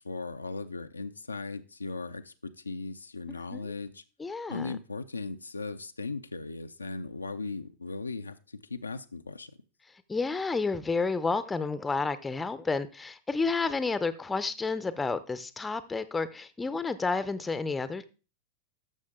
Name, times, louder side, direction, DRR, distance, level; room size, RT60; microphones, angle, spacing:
voice 1, 0.0-4.0 4.5-9.6, left 3 dB, 85° left, 0.6 m, -38 dB
voice 2, 3.3-3.7 4.2-4.7 10.1-18.0, left 4 dB, 10° left, 0.7 m, -31 dB
12.5 x 6.4 x 3.7 m
figure-of-eight pair, 95°, 0 cm